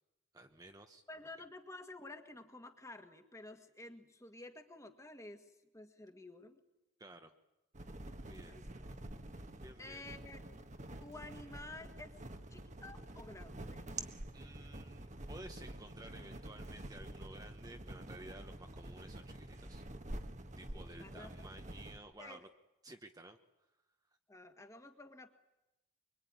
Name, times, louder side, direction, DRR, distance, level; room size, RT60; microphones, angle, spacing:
voice 1, 0.3-1.0 7.0-7.3 8.2-8.6 9.6-10.0 14.3-19.8 20.6-22.5 22.8-23.4, right 1 dB, 20° right, 5 dB, 1.1 m, -54 dB
voice 2, 1.1-6.6 8.2-9.0 9.8-10.4 11.0-12.2 12.5-13.9 20.7-21.5 22.2-22.5 24.3-25.3, left 2 dB, 15° left, 6 dB, 1.8 m, -52 dB
sound 1, 7.7-22.0, right 1 dB, 35° right, 1.5 m, -48 dB
25.0 x 23.5 x 9.6 m, 0.95 s
head